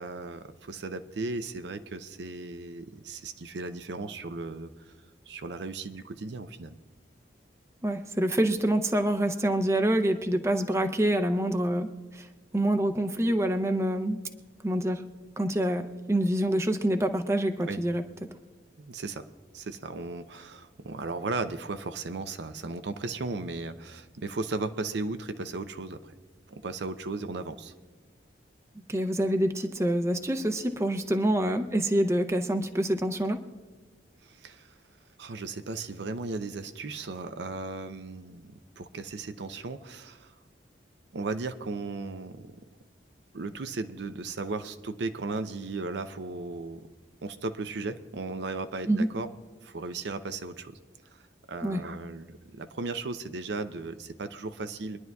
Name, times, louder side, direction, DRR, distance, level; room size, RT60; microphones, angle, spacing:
voice 1, 0.0-4.9 5.3-6.8 17.7-17.8 18.8-19.3 19.5-26.1 26.5-27.7 34.2-34.8 35.2-40.3 41.1-42.6 43.3-46.9 47.2-49.4 49.6-50.8 51.1-51.2 51.5-55.0, right 3 dB, 75° right, 10 dB, 0.6 m, -36 dB
voice 2, 7.8-11.9 12.1-12.3 12.5-14.2 14.6-15.0 15.4-18.0 28.9-33.4 48.9-49.1 51.6-51.8, right 1 dB, 15° right, 6 dB, 0.6 m, -26 dB
24.5 x 10.5 x 2.3 m, 1.3 s
head